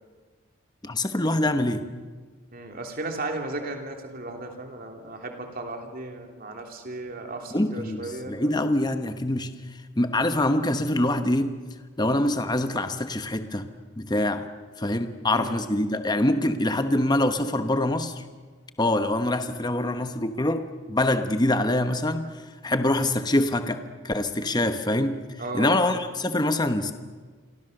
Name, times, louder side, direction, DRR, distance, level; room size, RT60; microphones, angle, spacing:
voice 1, 0.8-1.8 7.5-9.5 10.0-11.6 12.0-13.7 14.0-14.5 14.8-18.2 18.8-22.3 22.6-25.2 25.5-26.9, left 1 dB, 20° left, 8 dB, 1.1 m, -24 dB
voice 2, 2.5-8.5 15.3-15.5 25.4-25.8, right 2 dB, 45° right, 3 dB, 3.1 m, -35 dB
28.5 x 24.5 x 6.6 m, 1.5 s
head